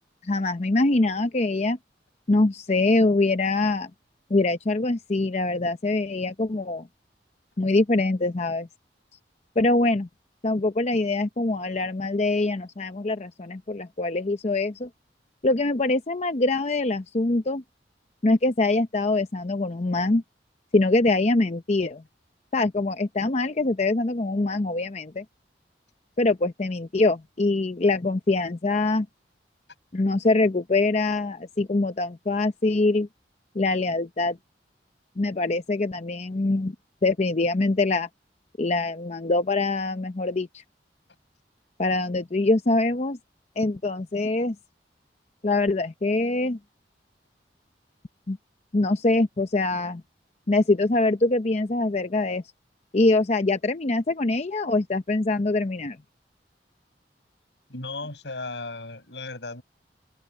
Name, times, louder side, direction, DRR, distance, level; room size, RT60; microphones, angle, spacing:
voice 1, 0.2-1.8 2.3-3.9 4.3-6.9 7.6-8.7 9.6-10.1 10.4-14.9 15.4-17.6 18.2-20.2 20.7-22.0 22.5-25.2 26.2-29.1 29.9-33.1 33.5-34.4 35.2-36.7 37.0-38.1 38.6-40.6 41.8-43.2 43.6-44.6 45.4-46.6 48.3-48.4 48.7-50.0 50.5-52.4 52.9-56.0, left 2 dB, 40° left, 0.7 m, -24 dB
voice 2, 57.7-59.6, left 3 dB, 85° left, 6.8 m, -35 dB
head